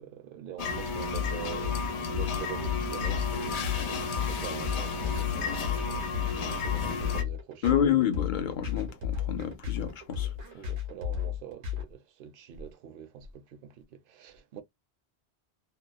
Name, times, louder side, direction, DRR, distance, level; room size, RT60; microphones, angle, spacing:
voice 1, 0.0-7.9 10.5-14.6, right 10 dB, 60° right, 0.7 m, -45 dB
sound 1, 0.6-7.2, left 4 dB, 85° left, 0.9 m, -33 dB
sound 2, 1.1-11.8, left 10 dB, 90° right, 1.3 m, -33 dB
voice 2, 7.6-10.3, left 9 dB, 55° left, 0.6 m, -28 dB
2.9 x 2.0 x 2.4 m
omnidirectional pair, 1.1 m